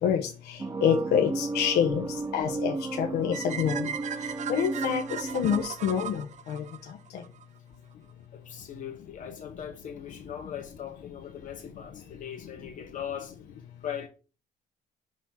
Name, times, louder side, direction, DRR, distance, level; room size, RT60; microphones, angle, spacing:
voice 1, 0.0-2.1 2.3-3.9 4.5-6.6, left 8 dB, 75° left, 1.1 m, -27 dB
sound 1, 0.6-5.7, right 3 dB, 20° right, 0.5 m, -34 dB
sound 2, 3.3-7.4, right 9 dB, 45° right, 0.8 m, -38 dB
voice 2, 8.3-13.4 13.8-14.1, left 9 dB, 50° left, 2.5 m, -39 dB
6.3 x 4.0 x 5.6 m
cardioid pair, 110°, 17 cm